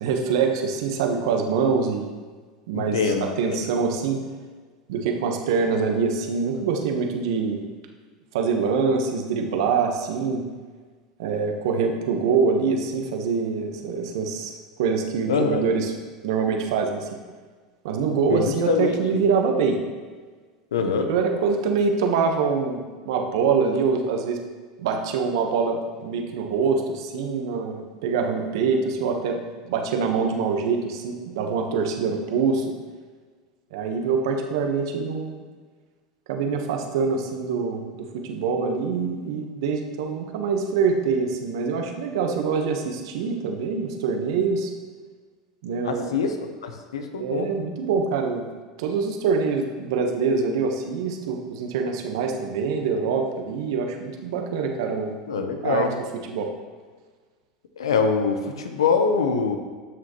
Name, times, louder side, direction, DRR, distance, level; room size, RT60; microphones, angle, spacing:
voice 1, 0.0-2.1 2.7-4.2 4.9-7.6 8.3-10.4 11.2-15.9 16.2-17.1 17.8-19.8 20.8-24.4 24.8-32.7 33.7-35.4 36.3-44.7 45.6-46.2 47.2-48.5 48.8-55.9 56.3-56.5, right 5 dB, 70° right, 3 dB, 1.2 m, -25 dB
voice 2, 2.7-3.6 15.3-15.6 18.3-19.2 20.7-21.1 45.8-46.3 46.6-47.5 55.3-55.9 57.8-59.6, left 5 dB, 85° left, 6 dB, 1.0 m, -24 dB
12.5 x 6.3 x 3.1 m, 1.4 s
hypercardioid pair, 90°, 3 cm